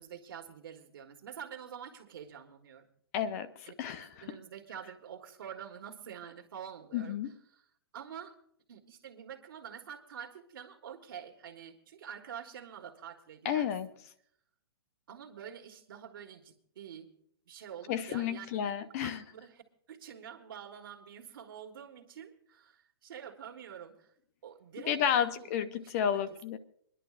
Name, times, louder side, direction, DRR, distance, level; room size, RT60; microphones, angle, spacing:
voice 1, 0.0-2.9 3.6-3.7 4.2-7.6 7.9-8.3 8.7-13.7 15.1-17.1 17.5-18.7 19.0-24.1 24.4-25.5 25.8-26.2, right 8 dB, 60° right, 4 dB, 1.6 m, -47 dB
voice 2, 3.1-4.1 6.9-7.3 13.4-13.9 17.9-19.2 24.9-26.6, left 9 dB, 40° left, 12 dB, 0.7 m, -31 dB
28.0 x 11.0 x 2.5 m, 0.66 s
hypercardioid pair, 150°, 13 cm